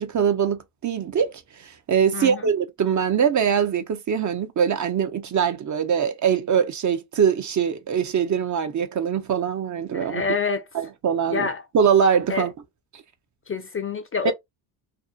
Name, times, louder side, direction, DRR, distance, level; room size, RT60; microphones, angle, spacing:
voice 1, 0.0-10.2 10.7-11.5 11.7-12.5 14.2-14.3, right 7 dB, 40° right, 0.5 m, -22 dB
voice 2, 2.1-2.5 9.9-10.6 11.3-11.6 12.3-12.5 13.5-14.3, left 5 dB, 30° left, 0.4 m, -27 dB
2.6 x 2.1 x 2.2 m
cardioid pair, 80°, 47 cm